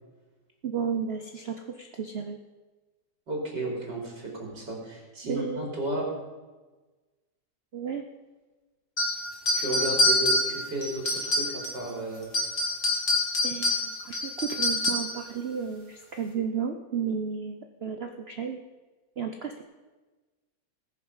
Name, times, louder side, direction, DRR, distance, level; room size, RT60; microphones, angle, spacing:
voice 1, 0.6-2.4 5.3-5.6 7.7-8.0 13.4-18.6 19.2-19.6, right 6 dB, 50° right, 5 dB, 0.8 m, -33 dB
voice 2, 3.3-6.0 9.5-12.3, right 2 dB, 90° right, -2 dB, 3.8 m, -33 dB
sound 1, 9.0-11.9 12.2-15.2, left 1 dB, 45° left, 2.5 m, -26 dB
19.5 x 6.8 x 5.5 m, 1.3 s
omnidirectional pair, 1.8 m